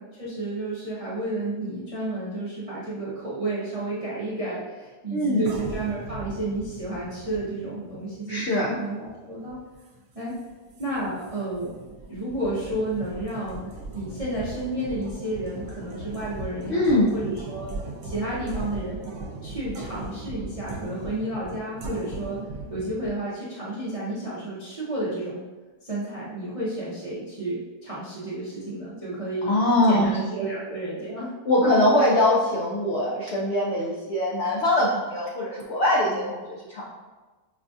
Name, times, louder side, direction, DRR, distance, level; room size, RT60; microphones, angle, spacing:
voice 1, 0.0-9.6 10.1-10.3 10.8-11.7 12.1-17.7 18.0-19.0 19.4-22.4 22.7-25.4 25.8-29.5 29.9-31.3 31.6-31.7, right 1 dB, 45° right, -9 dB, 0.4 m, -31 dB
voice 2, 5.1-5.5 8.3-8.8 16.7-17.1 29.4-30.1 31.5-36.9, left 1 dB, 65° left, -5 dB, 0.6 m, -22 dB
sound 1, 5.4-23.1, right 2 dB, 75° right, 1.2 m, -38 dB
5.3 x 2.3 x 2.6 m, 1.3 s
omnidirectional pair, 1.8 m